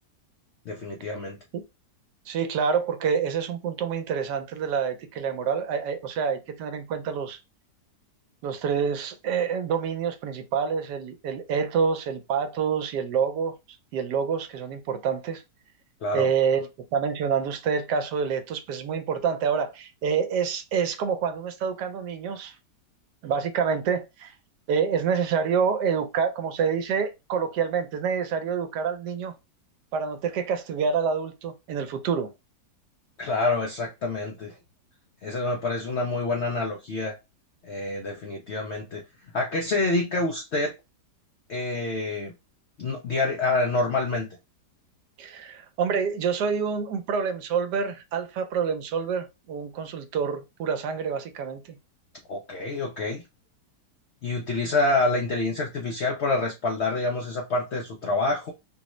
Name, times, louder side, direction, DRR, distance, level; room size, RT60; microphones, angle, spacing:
voice 1, 0.7-1.4 16.0-16.3 33.2-34.6 35.2-37.1 37.6-39.0 39.3-40.7 41.5-42.3 42.8-44.3 52.3-53.2 54.2-58.5, left 2 dB, 75° left, 0.6 m, -27 dB
voice 2, 2.3-7.4 8.4-13.6 13.9-15.4 16.1-22.6 23.2-24.3 24.7-29.3 29.9-32.3 45.2-51.8, right 6 dB, 80° right, 1.2 m, -27 dB
3.8 x 2.0 x 2.9 m
omnidirectional pair, 1.8 m